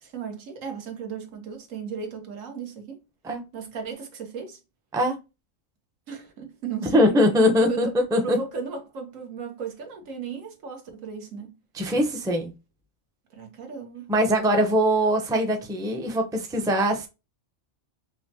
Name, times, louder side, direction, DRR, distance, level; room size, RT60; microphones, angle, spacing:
voice 1, 0.0-3.0 3.5-4.6 6.1-7.3 7.6-11.6 13.3-14.1, right 6 dB, 85° right, 1.4 m, -36 dB
voice 2, 6.9-8.4 11.7-12.5 14.1-17.1, equal, 5° right, 0.4 m, -22 dB
5.5 x 2.1 x 2.7 m
omnidirectional pair, 1.3 m